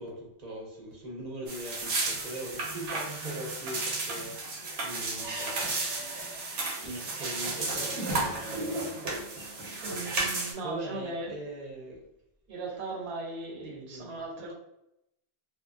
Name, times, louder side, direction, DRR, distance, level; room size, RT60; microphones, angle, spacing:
voice 1, 0.0-6.2 6.7-9.0 9.8-12.0 13.6-14.2, right 1 dB, 40° right, -2 dB, 0.8 m, -41 dB
sound 1, 1.5-10.5, right 3 dB, 90° right, 1.1 m, -33 dB
voice 2, 9.8-11.4 12.5-14.5, right 2 dB, 70° right, 0 dB, 0.9 m, -38 dB
2.8 x 2.5 x 2.3 m, 0.80 s
omnidirectional pair, 1.2 m